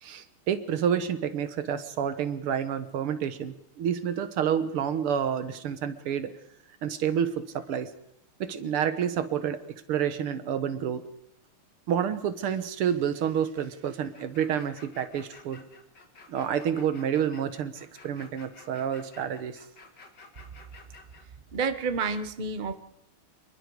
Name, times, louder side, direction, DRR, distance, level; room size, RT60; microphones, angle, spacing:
voice 1, 0.0-6.3 6.8-7.9 8.4-11.0 11.9-15.6 16.3-19.6, right 8 dB, 90° right, 11 dB, 2.1 m, -29 dB
sound 1, 14.1-21.2, left 4 dB, 50° left, 2.8 m, -52 dB
voice 2, 21.5-22.8, right 4 dB, 30° right, 10 dB, 1.1 m, -29 dB
26.5 x 22.0 x 4.9 m, 0.75 s
omnidirectional pair, 2.3 m